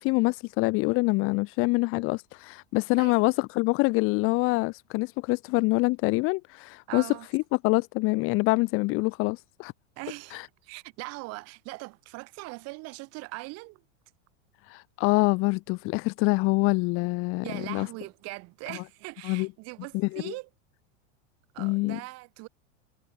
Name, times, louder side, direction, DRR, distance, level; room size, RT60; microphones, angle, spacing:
voice 1, 0.0-9.7 10.3-10.5 14.6-17.9 18.7-18.8 19.2-19.5 19.9-20.3 21.6-22.0, left 25 dB, 35° left, 1.0 m, -26 dB
voice 2, 6.9-7.3 10.0-13.8 17.4-20.5 21.5-22.5, right 25 dB, 40° right, 4.8 m, -41 dB
supercardioid pair, 155°, 37 cm